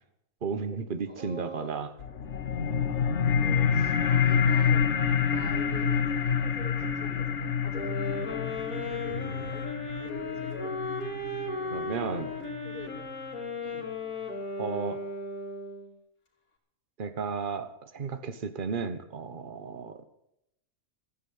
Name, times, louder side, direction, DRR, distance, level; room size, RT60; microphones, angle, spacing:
voice 1, 0.4-1.9 9.1-9.5 11.7-12.3 14.6-15.0 17.0-20.0, right 5 dB, 40° right, 11 dB, 1.2 m, -34 dB
voice 2, 1.1-1.7 3.4-8.4 8.8-9.6 10.0-10.7 11.5-13.0 13.6-13.9, left 2 dB, 30° left, 1 dB, 3.3 m, -45 dB
sound 1, 2.0-13.0, left 7 dB, 55° left, 1.3 m, -28 dB
sound 2, 7.7-15.9, left 2 dB, 80° left, 3.4 m, -36 dB
14.0 x 9.8 x 8.6 m, 0.81 s
omnidirectional pair, 1.5 m